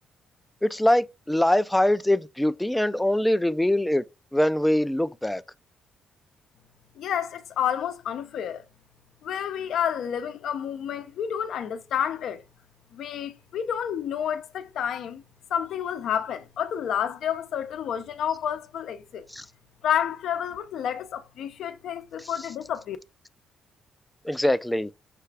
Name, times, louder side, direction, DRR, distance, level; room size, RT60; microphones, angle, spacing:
voice 1, 0.6-4.0 4.3-5.4 19.3-19.5 22.2-22.3 24.2-24.9, left 1 dB, 5° left, 0.4 m, -23 dB
voice 2, 7.0-8.6 9.2-12.4 12.9-15.2 15.5-19.3 19.8-23.0, left 9 dB, 70° left, 0.6 m, -30 dB
6.7 x 2.3 x 3.3 m
cardioid pair, 90°, 0 cm